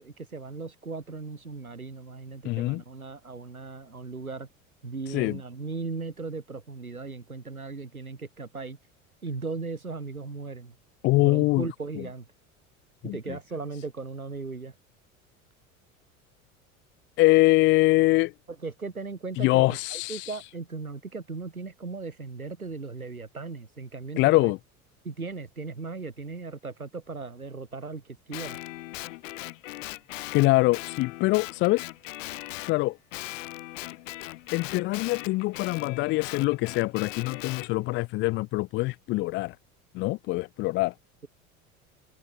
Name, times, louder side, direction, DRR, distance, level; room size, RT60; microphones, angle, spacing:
voice 1, 0.0-4.5 4.8-8.8 9.2-10.8 11.2-12.3 13.0-14.7 18.6-24.5 25.0-28.6, right 4 dB, 90° right, 2.6 m, -37 dB
voice 2, 2.4-2.8 5.1-5.4 11.0-11.7 13.0-13.4 17.2-18.3 19.4-20.4 24.2-24.6 30.3-31.9 32.6-33.0 34.5-39.6 39.9-40.9, left 21 dB, 30° left, 0.4 m, -24 dB
Guitar, 28.3-32.8 33.1-37.7, left 18 dB, 65° left, 2.7 m, -39 dB
figure-of-eight pair, 70°, 42 cm